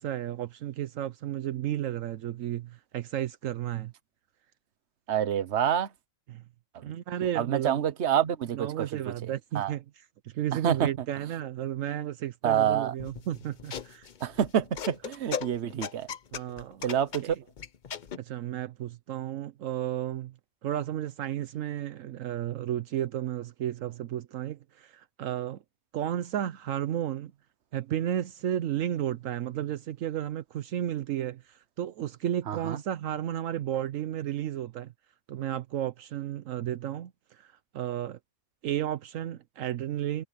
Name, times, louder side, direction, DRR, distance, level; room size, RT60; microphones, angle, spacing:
voice 1, 0.0-3.9 6.3-6.4 6.8-7.8 8.5-14.1 16.3-16.9 17.2-17.4 18.2-20.3 20.6-25.6 25.9-27.3 27.7-34.9 35.3-38.2 38.6-40.2, right 11 dB, 80° right, 1.1 m, -33 dB
voice 2, 5.1-5.9 7.4-9.1 9.5-9.7 10.6-10.8 12.4-12.9 14.2-16.1 16.8-17.3 32.5-32.8, right 9 dB, 60° right, 1.2 m, -27 dB
sound 1, 13.0-18.2, left 7 dB, 45° left, 0.7 m, -38 dB
omnidirectional pair, 1.4 m